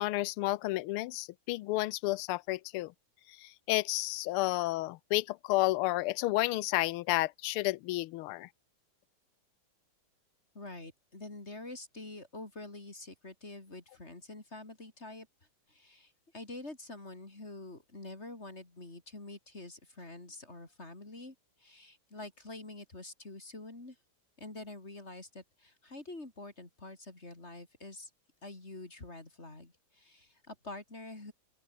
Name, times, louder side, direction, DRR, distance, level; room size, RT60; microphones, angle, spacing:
voice 1, 0.0-2.9 3.4-8.5, left 18 dB, 90° left, 1.5 m, -31 dB
voice 2, 10.5-15.3 15.7-24.0 24.4-28.1 28.4-31.3, left 2 dB, 30° left, 3.9 m, -47 dB
open air
omnidirectional pair, 2.4 m